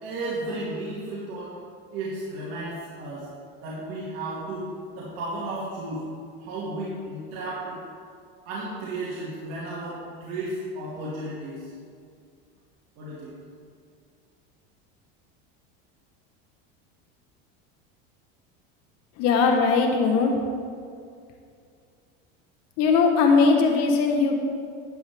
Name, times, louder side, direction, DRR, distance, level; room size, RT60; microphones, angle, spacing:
voice 1, 0.0-1.6 1.9-3.3 3.6-6.0 6.4-7.8 8.5-11.7 13.0-13.3, right 2 dB, 55° right, -7 dB, 2.3 m, -33 dB
voice 2, 19.2-20.4 22.8-24.3, left 4 dB, 55° left, 3 dB, 1.3 m, -20 dB
11.5 x 8.0 x 3.6 m, 2.3 s
supercardioid pair, 135°, 30 cm